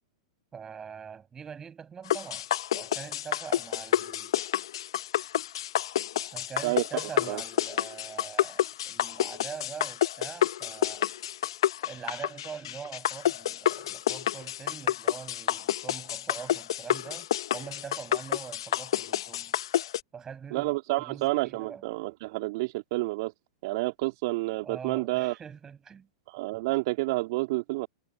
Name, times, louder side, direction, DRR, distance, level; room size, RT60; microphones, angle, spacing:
voice 1, 0.5-2.5 2.7-4.3 6.3-11.1 11.8-19.5 20.1-20.7 21.0-21.9 24.6-26.1, right 7 dB, 20° right, 7.2 m, -43 dB
sound 1, 2.1-20.0, left 12 dB, 65° left, 0.8 m, -29 dB
voice 2, 6.6-7.4 20.5-23.3 23.6-25.4 26.3-27.9, right 21 dB, 55° right, 2.5 m, -29 dB
hypercardioid pair, 105°, 3 cm